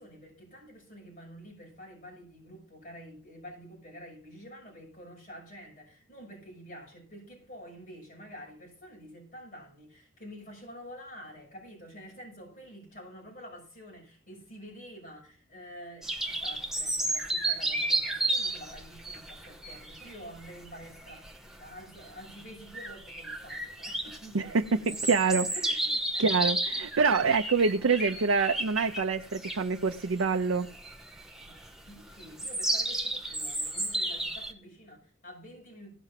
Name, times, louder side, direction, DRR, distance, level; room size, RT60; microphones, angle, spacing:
voice 1, 0.0-25.0 25.4-26.3 31.4-35.9, equal, 40° left, -3 dB, 6.3 m, -48 dB
sound 1, 16.0-34.5, right 1 dB, ahead, 0.9 m, -33 dB
voice 2, 24.3-25.5 26.2-30.7, right 4 dB, 75° right, 4 dB, 0.6 m, -26 dB
16.5 x 5.8 x 5.8 m, 0.42 s
head